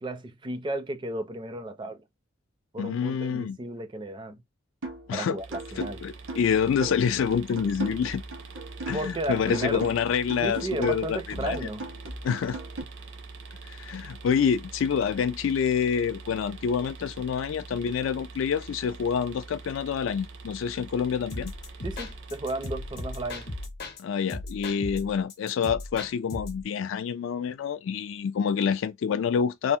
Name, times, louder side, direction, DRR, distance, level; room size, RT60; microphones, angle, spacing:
voice 1, 0.0-2.0 2.7-4.4 5.1-6.0 8.9-9.9 10.4-11.9 21.8-23.5, right 1 dB, 25° right, 0.4 m, -33 dB
voice 2, 2.8-3.6 5.1-5.4 5.8-8.2 8.9-11.6 12.2-12.6 13.7-21.5 24.0-29.8, left 7 dB, 70° left, 0.3 m, -27 dB
sound 1, 4.8-5.1 5.5-9.2 9.5-12.8, right 2 dB, 80° right, 1.1 m, -38 dB
sound 2, 5.4-23.7, right 4 dB, 65° right, 0.6 m, -44 dB
sound 3, 21.3-24.0 24.3-26.6, left 2 dB, 50° left, 0.7 m, -37 dB
3.3 x 2.0 x 2.7 m
head